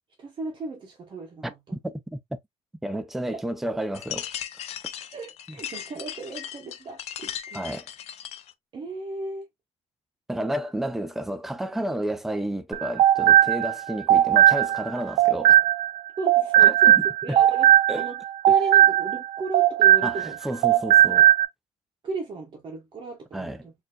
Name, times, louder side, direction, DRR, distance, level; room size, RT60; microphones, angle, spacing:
voice 1, 0.2-1.8 3.3-3.4 5.1-7.7 8.7-9.5 16.2-18.2 18.5-20.4 22.0-23.7, right 2 dB, 40° right, 0.9 m, -35 dB
voice 2, 1.7-2.2 2.8-4.3 7.5-7.9 10.3-15.6 16.6-16.7 17.3-17.4 17.9-18.1 20.0-21.3 23.3-23.7, right 1 dB, ahead, 0.4 m, -31 dB
sound 1, 3.9-8.5, left 10 dB, 55° left, 0.5 m, -37 dB
sound 2, 12.7-16.0 16.3-20.4 20.6-21.5, right 12 dB, 85° right, 0.5 m, -18 dB
4.2 x 2.6 x 2.3 m
cardioid pair, 140°, 13 cm